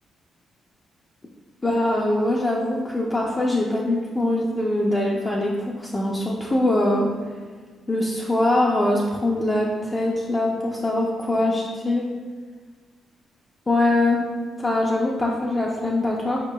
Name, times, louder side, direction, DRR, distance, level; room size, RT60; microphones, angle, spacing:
voice 1, 1.6-7.1 7.9-12.1 13.7-14.2 14.6-16.4, left 1 dB, 25° left, -3 dB, 0.4 m, -22 dB
4.8 x 4.4 x 2.2 m, 1.5 s
cardioid pair, 110°, 0 cm